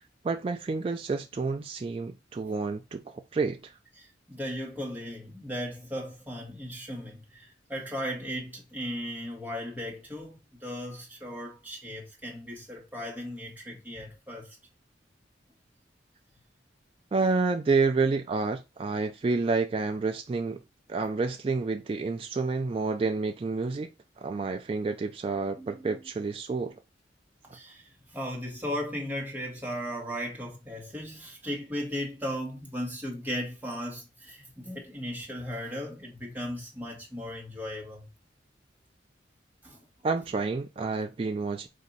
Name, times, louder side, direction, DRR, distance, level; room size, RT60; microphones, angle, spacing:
voice 1, 0.2-3.7 17.1-20.6 20.9-23.9 24.2-26.8 40.0-41.7, right 4 dB, 30° right, 0.3 m, -29 dB
voice 2, 4.0-14.6 25.6-26.0 27.5-38.1 39.6-39.8, equal, 10° right, 1.3 m, -37 dB
4.1 x 2.6 x 3.9 m
head